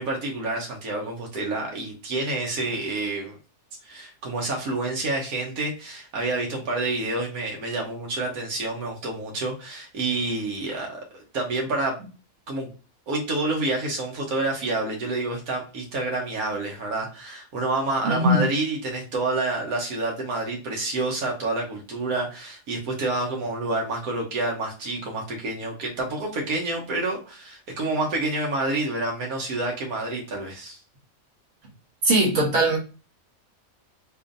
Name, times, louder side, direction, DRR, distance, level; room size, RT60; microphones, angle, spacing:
voice 1, 0.0-3.4 3.8-12.0 12.5-12.7 13.1-30.8, right 2 dB, 90° right, 0 dB, 1.4 m, -28 dB
voice 2, 18.0-18.4 32.0-32.8, right 1 dB, 55° right, -2 dB, 1.5 m, -20 dB
4.3 x 3.0 x 2.6 m, 0.34 s
omnidirectional pair, 1.5 m